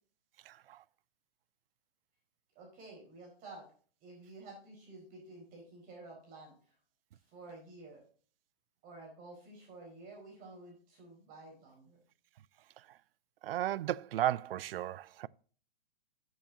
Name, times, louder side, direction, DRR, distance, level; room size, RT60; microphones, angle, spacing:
voice 1, 0.5-0.8 13.4-15.3, right 13 dB, 65° right, 0.4 m, -34 dB
voice 2, 2.5-3.6 4.0-6.7 7.3-8.0 8.8-12.0, right 2 dB, 25° right, 4.6 m, -51 dB
12.5 x 7.5 x 2.8 m
hypercardioid pair, 150°, 31 cm